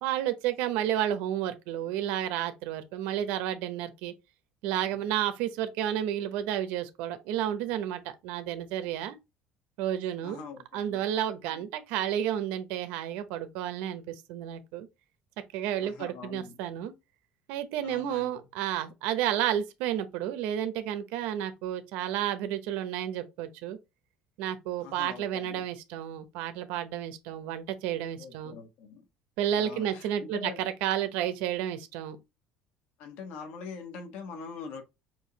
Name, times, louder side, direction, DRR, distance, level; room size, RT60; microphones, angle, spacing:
voice 1, 0.0-4.1 4.6-9.2 9.8-10.5 10.7-14.9 15.5-16.9 17.5-23.8 24.4-28.6 29.4-32.2, right 11 dB, 75° right, 0.9 m, -31 dB
voice 2, 10.2-11.0 11.5-11.7 15.8-16.6 17.8-18.5 24.8-25.6 28.2-29.0 29.6-30.6 33.0-34.8, left 6 dB, 65° left, 1.4 m, -43 dB
6.3 x 2.8 x 3.0 m
cardioid pair, 160°, 3 cm